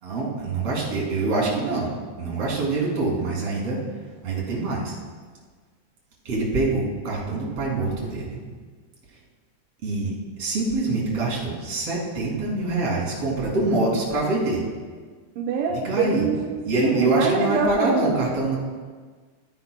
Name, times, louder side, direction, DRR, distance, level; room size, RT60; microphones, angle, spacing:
voice 1, 0.0-1.9 2.2-3.8 4.2-5.0 6.2-8.4 9.8-10.1 10.4-14.6 15.7-16.3 16.6-18.6, right 2 dB, 40° right, -5 dB, 2.9 m, -25 dB
voice 2, 15.4-16.5 16.8-18.3, right 4 dB, 85° right, -1 dB, 1.9 m, -25 dB
14.5 x 9.6 x 2.2 m, 1.5 s
omnidirectional pair, 4.9 m